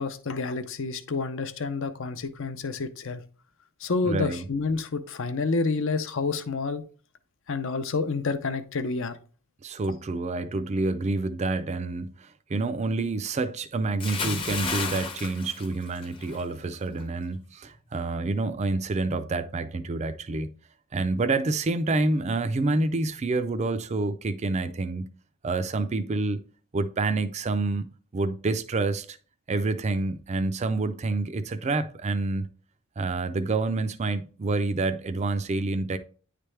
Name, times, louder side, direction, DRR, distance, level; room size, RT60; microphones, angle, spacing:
voice 1, 0.0-3.2 3.8-6.8 7.5-9.2, left 4 dB, 60° left, 0.6 m, -29 dB
voice 2, 4.0-4.5 9.6-20.6 20.9-25.1 25.4-26.4 26.7-27.9 28.1-29.2 29.5-32.5 33.0-36.0, right 3 dB, 30° right, 0.4 m, -28 dB
Bathtub (filling or washing) / Splash splatter, 14.0-16.4 16.7-17.0, left 4 dB, 25° left, 0.7 m, -32 dB
9.7 x 3.3 x 3.2 m
head